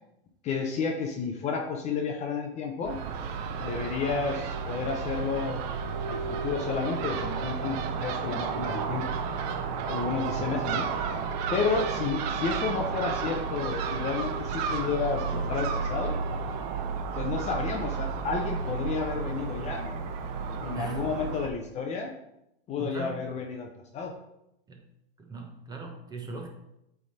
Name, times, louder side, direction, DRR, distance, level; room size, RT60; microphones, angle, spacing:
voice 1, 0.4-3.0 3.6-5.6 6.1-9.0 9.9-10.9 11.5-16.2 17.1-20.0 20.6-22.1 22.7-23.7 23.9-24.1, left 5 dB, 20° left, 2 dB, 0.7 m, -31 dB
Crow / Gull seagull, 2.8-21.5, right 5 dB, 40° right, 0.7 m, -32 dB
voice 2, 22.8-23.2 24.7-24.8 25.2-26.5, right 4 dB, 15° right, 2 dB, 0.8 m, -39 dB
8.3 x 3.6 x 4.1 m, 0.84 s
hypercardioid pair, 135°, 30 cm